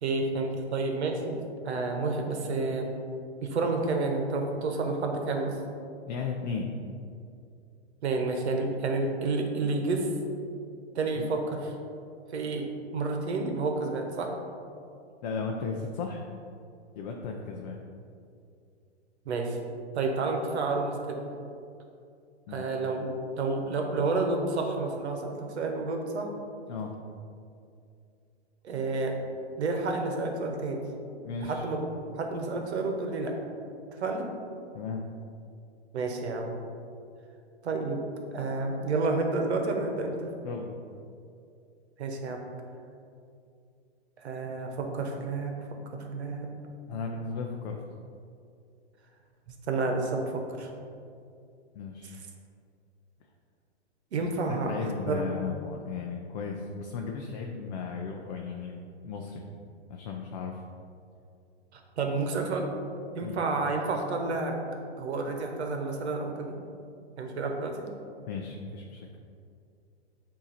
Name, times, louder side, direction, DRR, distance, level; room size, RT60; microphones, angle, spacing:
voice 1, 0.0-2.9 3.4-5.6 8.0-10.1 10.9-11.7 12.3-12.7 12.9-14.3 19.3-19.6 19.9-21.2 22.5-23.1 23.4-26.3 28.6-29.1 29.6-30.8 31.4-33.3 34.0-34.3 35.9-36.5 37.6-38.0 38.3-40.3 42.0-42.4 44.2-45.6 45.9-46.5 49.7-50.7 54.1-54.7 55.1-55.2 61.7-62.7 63.1-64.6 65.0-66.6 67.2-67.9, right 3 dB, 75° right, 3 dB, 1.1 m, -30 dB
voice 2, 6.1-6.7 11.2-11.3 15.2-16.2 16.9-17.8 22.5-22.6 26.7-26.9 31.2-31.6 34.7-35.0 40.4-40.7 46.9-47.8 51.7-52.1 54.5-59.4 59.9-60.6 63.2-63.4 68.3-69.1, left 5 dB, 40° left, 1 dB, 0.5 m, -35 dB
8.0 x 2.8 x 4.2 m, 2.5 s
hypercardioid pair, 135°, 34 cm